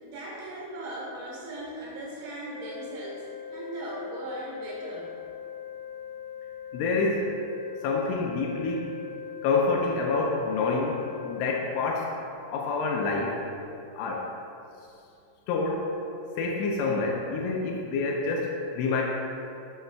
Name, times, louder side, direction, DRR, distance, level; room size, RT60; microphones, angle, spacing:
voice 1, 0.0-3.3 3.5-5.1, right 1 dB, 70° right, -5 dB, 3.5 m, -38 dB
sound 1, 2.4-12.1, left 8 dB, 90° right, 3.6 m, -41 dB
voice 2, 6.7-7.3 7.8-8.9 9.4-12.1 12.5-13.4 13.9-14.3 15.5-15.9 16.4-19.0, left 3 dB, 80° left, -1 dB, 2.9 m, -27 dB
8.0 x 7.7 x 2.3 m, 2.7 s
omnidirectional pair, 5.8 m